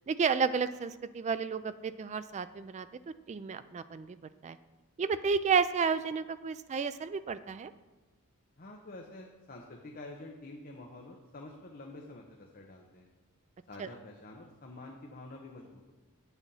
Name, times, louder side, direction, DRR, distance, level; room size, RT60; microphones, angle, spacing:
voice 1, 0.1-2.9 3.3-4.2 4.4-4.6 5.0-7.7 13.8-13.9, right 5 dB, 30° right, 13 dB, 0.3 m, -31 dB
voice 2, 8.6-13.1 13.7-15.9, left 2 dB, 40° left, 0 dB, 0.9 m, -48 dB
8.6 x 8.1 x 5.5 m, 1.2 s
head